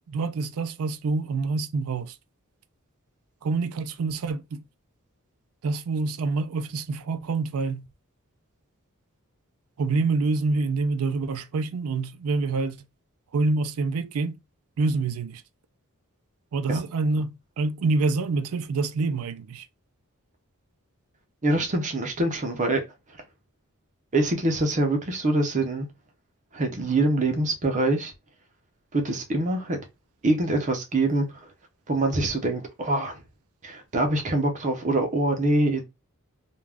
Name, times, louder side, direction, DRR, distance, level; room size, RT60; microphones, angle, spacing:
voice 1, 0.1-2.2 3.4-4.6 5.6-7.9 9.8-12.9 13.3-14.4 14.8-15.4 16.5-19.7, right 3 dB, 75° right, 0.4 m, -26 dB
voice 2, 21.4-22.8 24.1-25.9 26.5-28.1 28.9-29.8 30.2-31.5 31.9-33.2 33.6-35.8, right 2 dB, 35° right, 0.6 m, -24 dB
2.4 x 2.3 x 3.3 m
head